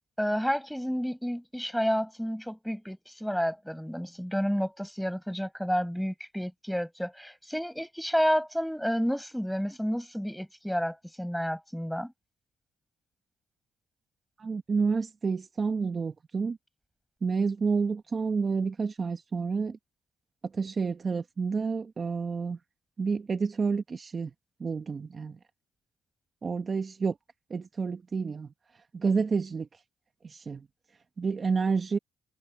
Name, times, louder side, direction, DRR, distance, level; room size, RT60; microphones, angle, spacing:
voice 1, 0.2-12.1, equal, ahead, 6.4 m, -30 dB
voice 2, 14.4-16.6 17.2-19.8 20.5-22.6 23.0-24.3 24.6-25.4 26.4-27.2 27.5-28.5 28.9-29.7 30.2-30.7 31.2-32.0, right 5 dB, 40° right, 1.4 m, -29 dB
cardioid pair, 90°, 0 cm